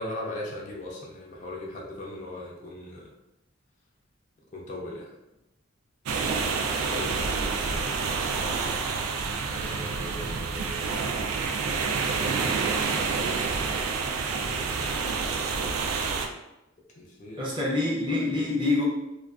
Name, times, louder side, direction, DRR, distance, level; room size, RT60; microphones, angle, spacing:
voice 1, 0.0-3.1 4.5-5.1 6.6-8.5 9.5-10.9 14.5-14.9 17.0-17.4 18.0-18.5, left 1 dB, 35° left, -2 dB, 0.3 m, -39 dB
sound 1, 6.1-16.3, right 4 dB, 85° right, 0.3 m, -28 dB
voice 2, 17.4-18.8, left 2 dB, 25° right, -5 dB, 0.5 m, -26 dB
2.3 x 2.3 x 2.3 m, 0.92 s
head